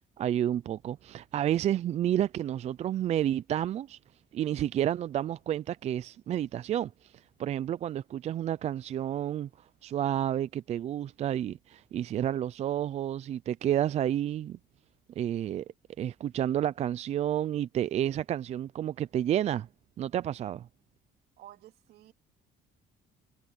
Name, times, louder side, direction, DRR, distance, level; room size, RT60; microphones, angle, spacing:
voice 1, 0.2-4.0 4.3-14.6 15.2-15.6 16.0-19.7 20.0-20.7, right 11 dB, 40° right, 0.4 m, -30 dB
voice 2, 21.4-22.1, right 14 dB, 75° right, 2.9 m, -52 dB
cardioid pair, 135°, 16 cm